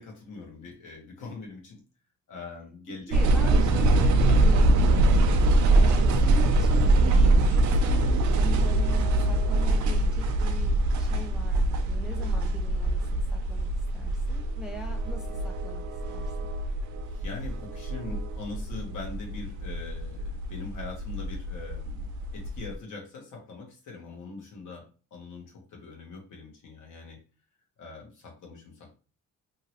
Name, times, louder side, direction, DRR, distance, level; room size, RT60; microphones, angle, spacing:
voice 1, 0.0-1.8 2.3-3.3 4.3-4.4 17.0-27.2 27.8-28.9, left 3 dB, 75° left, 0 dB, 1.4 m, -42 dB
voice 2, 2.9-13.7 13.9-15.8 16.1-16.5, right 1 dB, ahead, 3 dB, 0.3 m, -42 dB
sound 1, 3.1-22.7, right 2 dB, 65° right, 0.5 m, -24 dB
2.8 x 2.8 x 2.9 m, 0.35 s
cardioid pair, 150°, 32 cm